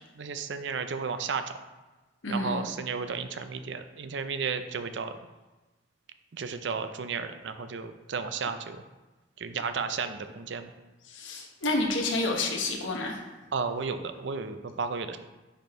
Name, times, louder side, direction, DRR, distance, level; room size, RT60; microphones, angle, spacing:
voice 1, 0.2-1.6 2.3-5.2 6.3-8.8 9.4-10.7 13.5-15.2, right 5 dB, 65° right, 9 dB, 0.5 m, -33 dB
voice 2, 2.2-2.7 11.1-13.2, left 2 dB, 80° left, 1 dB, 1.2 m, -29 dB
10.0 x 4.5 x 3.1 m, 1.1 s
head